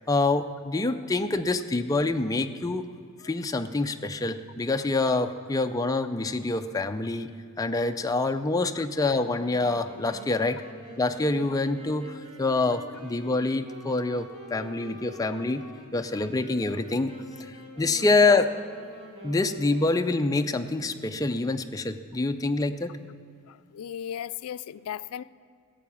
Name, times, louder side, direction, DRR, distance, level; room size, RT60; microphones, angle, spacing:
voice 1, 0.1-2.8 3.2-7.3 7.6-10.6 11.0-15.6 15.9-17.1 17.4-18.5 19.2-22.9, left 3 dB, 15° left, 7 dB, 0.4 m, -26 dB
Wind instrument woodwind instrument, 9.4-20.3, equal, 30° right, 2.3 m, -45 dB
voice 2, 23.5-25.2, left 9 dB, 80° left, 15 dB, 0.4 m, -36 dB
14.0 x 8.4 x 7.2 m, 2.2 s
head